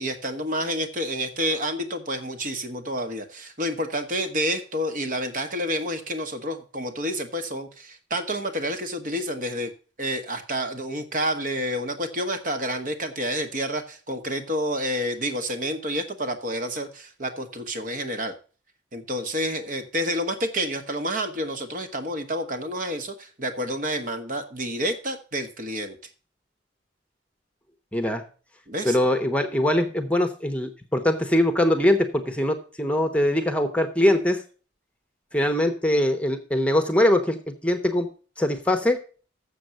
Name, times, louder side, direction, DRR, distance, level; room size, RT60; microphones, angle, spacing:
voice 1, 0.0-9.7 10.0-18.3 18.9-26.0 28.7-29.0, equal, 45° right, 7 dB, 1.2 m, -29 dB
voice 2, 27.9-28.2 28.8-34.4 35.3-38.1 38.4-39.0, left 1 dB, 5° left, 7 dB, 0.9 m, -22 dB
7.1 x 6.9 x 7.7 m, 0.38 s
head